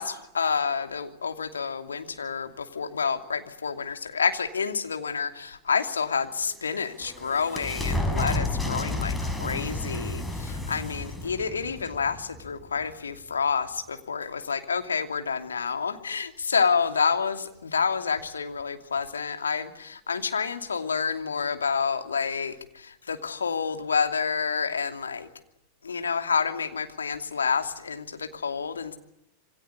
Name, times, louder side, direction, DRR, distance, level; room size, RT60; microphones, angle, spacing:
voice 1, 0.0-25.3 25.8-29.0, left 5 dB, 70° left, 6 dB, 2.8 m, -29 dB
sound 1, 6.4-12.9, left 2 dB, 10° left, 5.3 m, -31 dB
27.5 x 24.5 x 8.5 m, 0.79 s
figure-of-eight pair, 90°, 0 cm